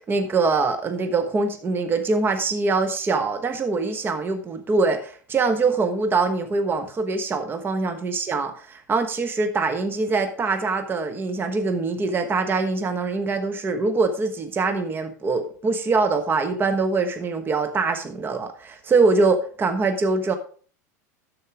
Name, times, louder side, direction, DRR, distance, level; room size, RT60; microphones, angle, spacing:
voice 1, 0.1-20.4, right 3 dB, 20° right, 7 dB, 1.1 m, -23 dB
12.5 x 4.8 x 4.8 m, 0.43 s
hypercardioid pair, 90°, 9 cm